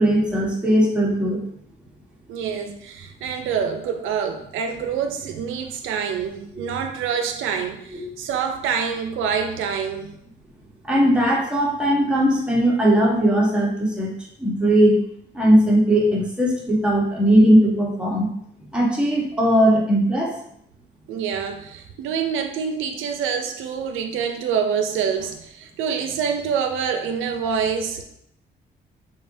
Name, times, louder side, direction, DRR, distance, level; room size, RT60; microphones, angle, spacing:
voice 1, 0.0-1.4 7.9-8.0 10.9-14.1 14.4-15.0 15.3-18.3 18.7-20.3, equal, 5° right, -4 dB, 1.1 m, -18 dB
voice 2, 2.3-10.1 21.1-28.0, right 7 dB, 85° right, 6 dB, 0.4 m, -26 dB
3.8 x 3.3 x 2.6 m, 0.71 s
cardioid pair, 90°, 20 cm